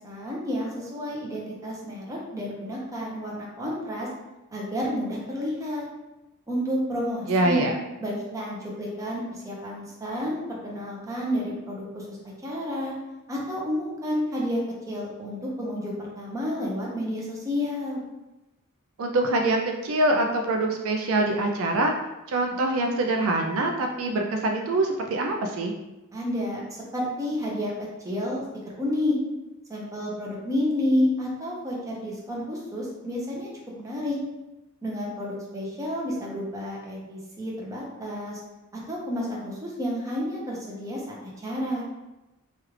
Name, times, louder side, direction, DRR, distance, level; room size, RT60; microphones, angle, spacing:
voice 1, 0.0-4.1 4.5-5.9 6.5-7.7 8.0-12.2 12.4-12.9 13.3-14.6 14.9-18.0 26.1-26.6 26.9-28.4 28.7-29.1 29.7-33.5 33.8-34.2 34.8-38.4 38.9-41.8, left 1 dB, 15° right, -4 dB, 0.7 m, -30 dB
voice 2, 7.3-7.7 19.0-21.9 22.3-25.7, right 2 dB, 65° right, 3 dB, 0.3 m, -24 dB
3.1 x 2.4 x 3.1 m, 1.0 s
head